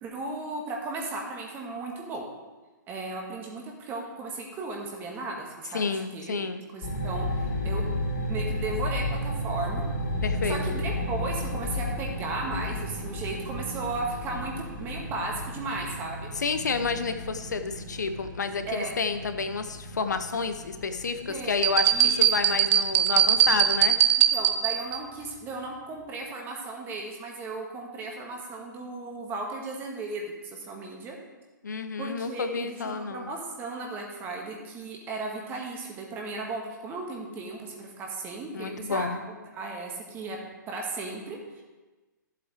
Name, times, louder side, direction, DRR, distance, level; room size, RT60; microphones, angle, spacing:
voice 1, 0.0-2.3 2.9-5.8 6.1-6.4 6.7-7.8 8.3-9.8 10.5-16.3 18.7-18.9 21.3-21.6 21.9-22.3 24.3-31.2 32.0-40.4 40.7-41.6, right 3 dB, 20° right, 0 dB, 1.9 m, -35 dB
voice 2, 5.7-6.6 10.2-10.8 16.3-24.0 31.6-33.3 38.5-39.2, left 5 dB, 60° left, 9 dB, 0.9 m, -30 dB
sound 1, 6.8-23.9, left 1 dB, 45° left, 3.4 m, -33 dB
sound 2, 21.6-25.0, right 10 dB, 35° right, 0.6 m, -21 dB
14.5 x 7.9 x 3.4 m, 1.2 s
figure-of-eight pair, 120°, 11 cm